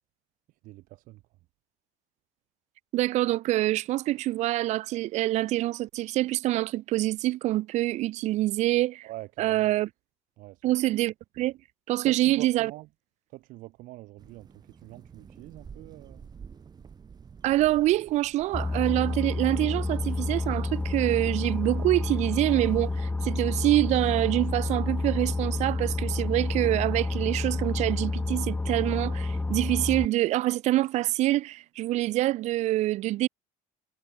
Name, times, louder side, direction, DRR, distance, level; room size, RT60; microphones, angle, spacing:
voice 1, 0.5-1.2 9.0-9.7 10.4-10.6 12.0-12.9 13.3-16.2, right 19 dB, 70° right, 2.9 m, -45 dB
voice 2, 2.9-9.1 9.4-9.9 10.6-11.5 11.9-12.7 17.4-33.3, right 16 dB, 50° right, 0.4 m, -26 dB
sound 1, 14.2-23.0, right 6 dB, 30° right, 5.4 m, -49 dB
Boat Water vehicle, 18.5-30.1, left 2 dB, 10° left, 1.3 m, -29 dB
cardioid pair, 130°, 15 cm